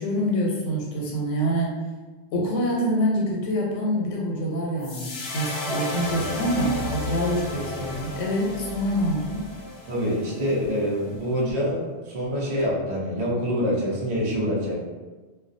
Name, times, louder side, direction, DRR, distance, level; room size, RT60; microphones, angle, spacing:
voice 1, 0.0-1.8 2.3-9.5, equal, 85° left, -2 dB, 1.0 m, -26 dB
sound 1, 4.8-11.1, left 2 dB, 65° left, 0.8 m, -33 dB
voice 2, 9.9-14.7, equal, 45° right, -5 dB, 0.6 m, -26 dB
2.3 x 2.2 x 2.5 m, 1.3 s
omnidirectional pair, 1.2 m